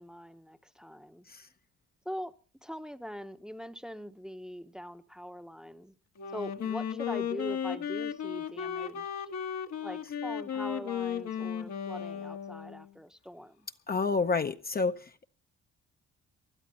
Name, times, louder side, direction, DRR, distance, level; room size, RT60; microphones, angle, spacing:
voice 1, 0.0-1.3 2.0-2.3 2.6-5.9 6.3-9.3 9.8-13.7, equal, ahead, 0.8 m, -42 dB
Wind instrument woodwind instrument, 6.2-12.9, left 8 dB, 70° left, 1.3 m, -35 dB
voice 2, 13.9-15.2, left 4 dB, 30° left, 0.7 m, -30 dB
20.0 x 12.0 x 4.1 m
cardioid pair, 90°, 29 cm